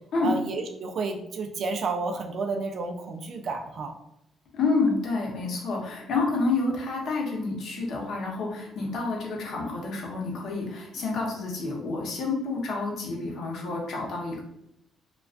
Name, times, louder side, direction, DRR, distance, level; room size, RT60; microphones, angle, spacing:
voice 1, 0.2-3.9, right 3 dB, 60° right, 4 dB, 0.3 m, -31 dB
voice 2, 4.5-14.4, left 3 dB, 70° left, -1 dB, 0.7 m, -29 dB
2.3 x 2.3 x 2.4 m, 0.81 s
cardioid pair, 90°, 0 cm